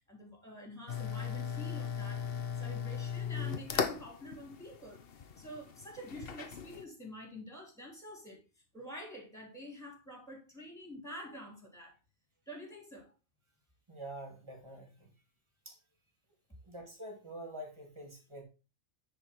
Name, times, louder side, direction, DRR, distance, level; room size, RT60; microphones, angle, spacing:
voice 1, 0.1-2.3 2.6-5.0 5.4-12.0 12.5-13.1, equal, ahead, 3.3 m, -48 dB
sound 1, 0.9-6.8, left 7 dB, 50° left, 0.9 m, -38 dB
voice 2, 13.9-15.1 15.7-15.8 16.6-18.4, right 1 dB, 20° right, 2.6 m, -46 dB
9.9 x 5.2 x 4.5 m
omnidirectional pair, 1.4 m